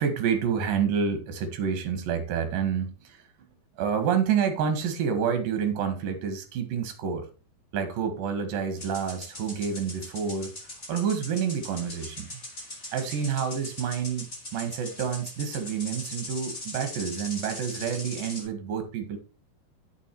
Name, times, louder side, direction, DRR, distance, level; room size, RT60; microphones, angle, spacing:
voice 1, 0.0-3.2 3.8-7.3 7.7-10.5 10.9-12.3 12.9-14.3 14.5-19.2, right 7 dB, 65° right, 7 dB, 3.2 m, -28 dB
sound 1, 8.8-18.5, left 1 dB, 15° left, 3.6 m, -40 dB
8.3 x 6.8 x 4.5 m, 0.33 s
omnidirectional pair, 4.7 m